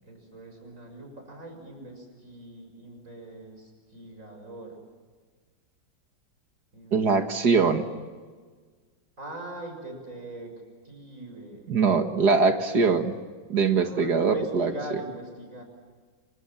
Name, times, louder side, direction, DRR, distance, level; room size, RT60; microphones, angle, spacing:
voice 1, 0.0-4.8 6.7-7.1 9.2-10.5 10.8-11.7 13.8-15.6, right 2 dB, 40° right, 4 dB, 7.2 m, -41 dB
voice 2, 6.9-7.9 11.7-13.1 13.5-14.7, right 4 dB, 60° right, 6 dB, 2.4 m, -22 dB
28.5 x 26.0 x 7.3 m, 1.5 s
omnidirectional pair, 2.0 m